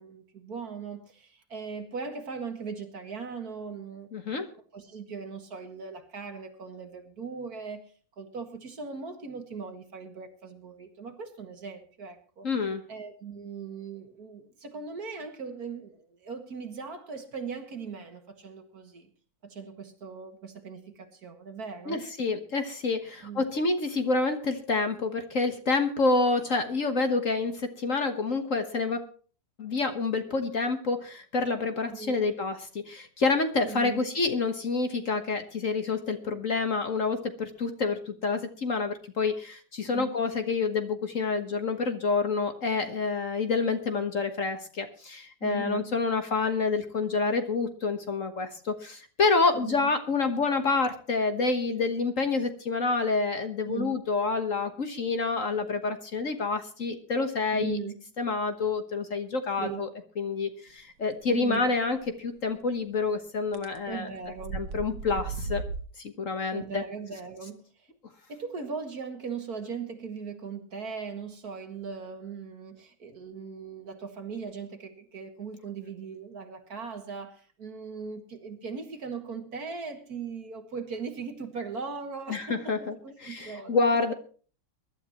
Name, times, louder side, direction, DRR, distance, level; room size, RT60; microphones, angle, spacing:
voice 1, 0.0-4.1 4.7-12.5 12.9-19.1 19.4-22.1 23.2-23.4 31.8-32.1 33.6-34.0 39.8-40.2 45.4-45.9 49.5-49.9 53.6-54.0 57.5-58.0 59.6-59.8 61.3-61.6 63.9-64.7 66.5-67.9 68.3-83.8, right 5 dB, 55° right, 6 dB, 2.3 m, -39 dB
voice 2, 4.1-4.5 12.4-12.8 21.9-29.0 29.6-57.8 58.2-59.9 60.2-64.1 64.5-65.6 66.2-66.8 82.3-82.9 83.2-84.1, left 4 dB, 45° left, 7 dB, 1.5 m, -28 dB
sound 1, 62.1-62.2 63.5-63.8 64.3-65.8, right 4 dB, 80° right, 1.9 m, -35 dB
23.0 x 11.5 x 3.0 m, 0.40 s
omnidirectional pair, 2.0 m